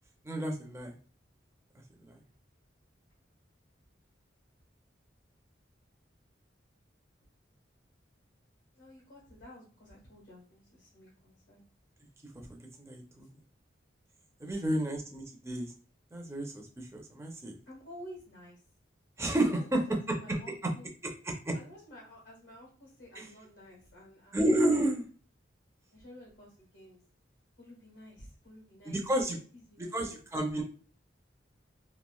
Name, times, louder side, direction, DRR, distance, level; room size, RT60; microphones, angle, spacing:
voice 1, 0.2-0.9 2.1-2.2 12.8-13.3 14.4-15.7 16.1-17.6 19.2-19.8 20.1-20.7 21.0-21.5 23.2-23.3 24.3-25.1 28.8-29.4 29.8-30.6, right 1 dB, 15° right, 1 dB, 0.4 m, -31 dB
voice 2, 8.7-11.6 14.4-14.6 17.7-18.6 19.5-20.9 21.5-24.5 25.9-27.0 27.6-30.0, equal, 85° left, -6 dB, 1.4 m, -52 dB
2.9 x 2.4 x 2.3 m, 0.41 s
head